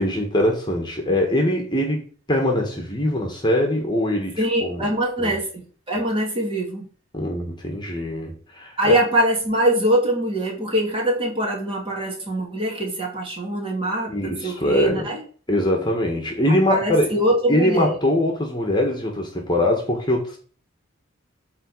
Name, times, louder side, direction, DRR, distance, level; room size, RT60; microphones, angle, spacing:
voice 1, 0.0-4.9 5.2-5.3 7.1-8.9 14.1-15.1 15.5-17.1 17.5-20.4, left 1 dB, 20° left, 1.6 m, -22 dB
voice 2, 4.4-6.8 8.8-15.2 16.7-17.9, right 1 dB, 25° right, 2.7 m, -23 dB
9.0 x 3.8 x 6.2 m
head